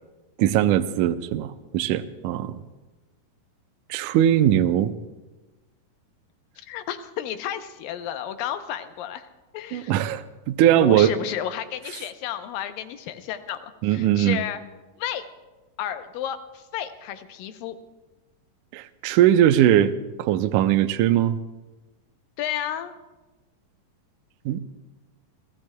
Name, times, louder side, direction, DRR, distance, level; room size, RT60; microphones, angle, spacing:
voice 1, 0.4-2.6 3.9-4.9 9.7-11.1 13.8-14.4 18.7-19.9 20.2-21.4 24.5-24.6, right 11 dB, 80° right, 10 dB, 1.8 m, -20 dB
voice 2, 6.7-9.3 9.5-9.9 10.8-14.6 15.0-15.3 15.8-17.8 22.4-23.0, left 10 dB, 80° left, 9 dB, 2.5 m, -32 dB
28.5 x 15.0 x 2.2 m, 1.2 s
omnidirectional pair, 4.1 m